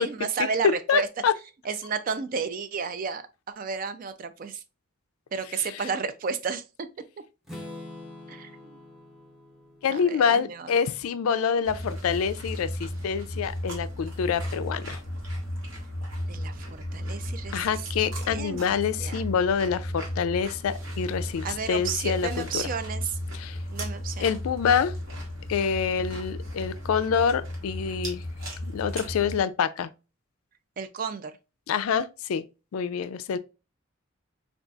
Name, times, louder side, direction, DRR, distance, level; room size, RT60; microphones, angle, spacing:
voice 1, 0.0-1.1 1.6-3.2 3.5-4.6 5.3-6.9 8.3-8.8 9.8-10.7 16.3-17.9 18.2-19.2 21.4-23.2 23.7-24.3 30.8-31.3, right 5 dB, 40° right, 0.3 m, -32 dB
voice 2, 0.9-1.3 9.8-15.0 17.5-22.6 23.3-23.6 24.2-24.9 25.5-28.2 28.6-29.9 31.7-32.4 32.7-33.4, left 7 dB, 80° left, 0.3 m, -26 dB
Strum, 7.4-11.4, left 1 dB, ahead, 0.7 m, -45 dB
sound 1, 11.6-29.4, equal, 60° right, 1.2 m, -35 dB
3.8 x 2.4 x 2.3 m
head